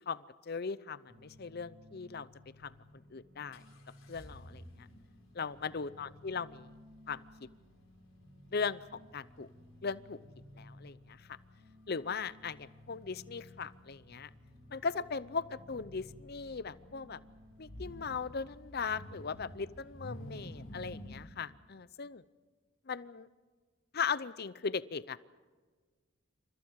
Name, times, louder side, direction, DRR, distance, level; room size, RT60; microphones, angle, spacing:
voice 1, 0.0-2.3 2.6-2.7 3.1-3.6 4.1-4.9 5.3-6.7 7.1-7.5 8.5-9.5 9.8-10.2 10.6-11.3 11.9-14.3 14.7-17.2 17.6-22.2 22.9-23.3 23.9-25.2, left 5 dB, 50° left, 17 dB, 0.6 m, -38 dB
sound 1, 1.1-18.3, left 1 dB, 55° right, 4.9 m, -57 dB
sound 2, 2.6-2.7 3.5-21.3, equal, 70° left, 4.5 m, -53 dB
28.5 x 26.5 x 4.8 m, 1.4 s
head